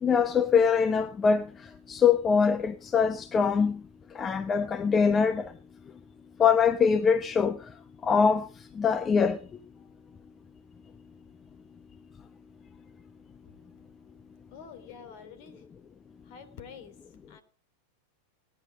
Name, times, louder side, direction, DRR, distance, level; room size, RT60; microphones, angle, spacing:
voice 1, 0.0-1.5 1.9-3.8 4.1-5.5 6.4-7.6 8.0-8.5 8.8-9.4, left 6 dB, 20° left, 0.8 m, -23 dB
voice 2, 14.5-15.6 16.2-16.9 17.3-17.4, left 7 dB, 45° left, 3.2 m, -47 dB
18.5 x 10.0 x 5.0 m
figure-of-eight pair, 90°, 0 cm